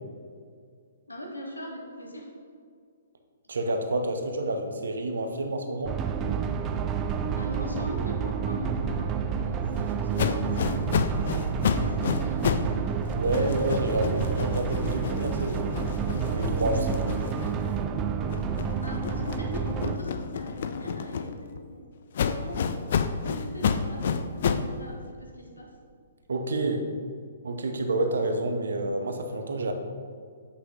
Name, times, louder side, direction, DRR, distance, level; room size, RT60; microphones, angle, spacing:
voice 1, 1.1-2.3 7.3-12.9 18.8-21.8 22.2-25.7, equal, 80° left, -1 dB, 1.4 m, -41 dB
voice 2, 3.5-6.0 13.1-15.7 16.3-17.2 26.3-26.9 27.4-29.7, right 2 dB, 65° right, 5 dB, 0.7 m, -29 dB
sound 1, 5.9-20.0, right 7 dB, 20° right, 0.3 m, -29 dB
sound 2, 10.2-12.8 13.1-17.8 18.3-21.6 22.1-24.7, left 6 dB, 50° left, 0.3 m, -30 dB
8.1 x 5.6 x 2.8 m, 2.1 s
figure-of-eight pair, 120°, 0 cm